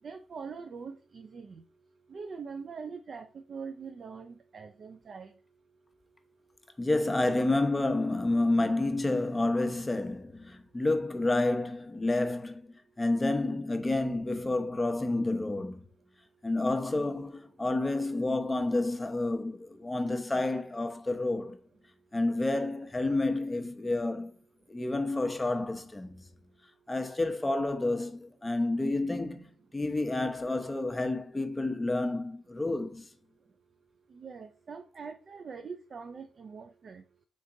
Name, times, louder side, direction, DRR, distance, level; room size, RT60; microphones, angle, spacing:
voice 1, 0.0-1.6 2.1-5.4 34.1-37.0, right 5 dB, 60° right, 0.4 m, -43 dB
voice 2, 6.8-15.8 16.4-21.6 22.1-24.3 24.7-26.1 26.9-33.1, left 2 dB, 20° left, 0.8 m, -29 dB
3.9 x 3.6 x 3.8 m
supercardioid pair, 55°, 0 cm